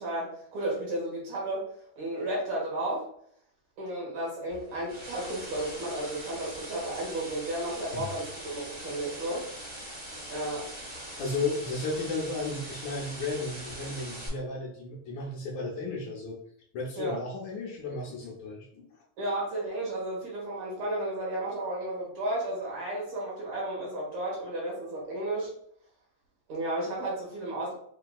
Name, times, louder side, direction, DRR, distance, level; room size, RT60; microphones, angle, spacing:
voice 1, 0.0-1.7 2.0-3.1 3.8-9.4 10.3-10.7 17.0-17.2 19.2-25.5 26.5-27.7, right 1 dB, 60° right, -4 dB, 2.4 m, -33 dB
sound 1, 4.5-14.3, right 1 dB, 90° right, 0.7 m, -42 dB
voice 2, 11.2-16.4 16.7-18.9, left 3 dB, 75° left, -3 dB, 1.8 m, -34 dB
5.8 x 2.7 x 2.3 m, 0.66 s
omnidirectional pair, 3.8 m